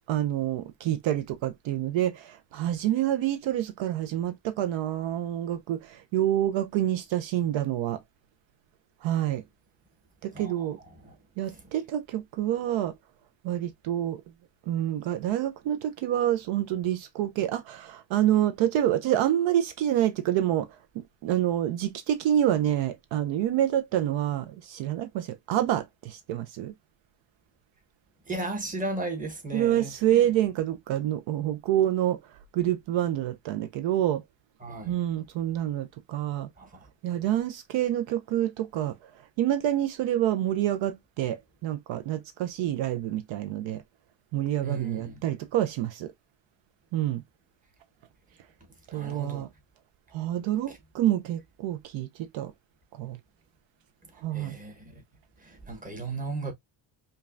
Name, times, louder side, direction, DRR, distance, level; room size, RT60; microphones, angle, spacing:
voice 1, 0.1-8.0 9.0-9.4 10.2-10.8 11.4-12.9 13.4-14.2 14.7-20.7 20.9-26.7 29.5-34.2 34.8-36.5 37.0-39.1 39.4-43.8 44.3-46.1 46.9-47.2 48.9-49.5 50.1-52.5 52.9-53.2 54.2-54.6, right 12 dB, 70° right, 0.6 m, -27 dB
voice 2, 10.3-11.2 11.5-11.6 28.2-30.2 34.6-35.0 36.6-36.9 44.6-45.2 48.9-49.5 50.7-50.8 54.0-55.0 55.4-56.5, right 3 dB, 15° right, 1.1 m, -36 dB
5.2 x 2.3 x 2.5 m
cardioid pair, 145°, 48 cm